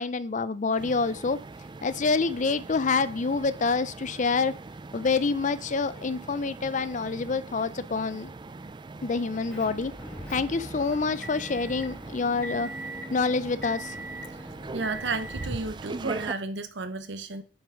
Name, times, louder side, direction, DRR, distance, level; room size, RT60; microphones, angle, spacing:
voice 1, 0.0-1.4 1.8-4.5 4.9-8.3 9.0-9.9 10.3-12.7 13.1-14.0, left 4 dB, 40° left, 0.5 m, -27 dB
sound 1, 0.8-16.3, right 3 dB, 25° right, 0.3 m, -41 dB
Motor vehicle (road) / Engine, 9.5-15.6, right 1 dB, 5° left, 3.4 m, -41 dB
voice 2, 14.7-17.4, right 3 dB, 60° right, 1.0 m, -32 dB
7.3 x 6.1 x 5.0 m
head